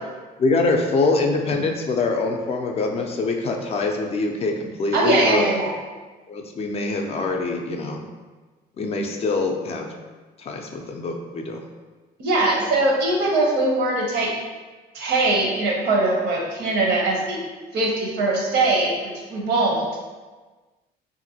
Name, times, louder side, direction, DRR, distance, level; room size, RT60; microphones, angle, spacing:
voice 1, 0.4-5.5 6.3-8.0 8.8-9.9 10.4-11.6, left 3 dB, 35° left, 2 dB, 0.4 m, -24 dB
voice 2, 4.9-5.7 12.2-14.3 14.9-17.4 17.7-18.9 19.3-19.9, right 2 dB, 80° right, -1 dB, 0.8 m, -21 dB
2.8 x 2.5 x 2.7 m, 1.3 s
cardioid pair, 110°, 17 cm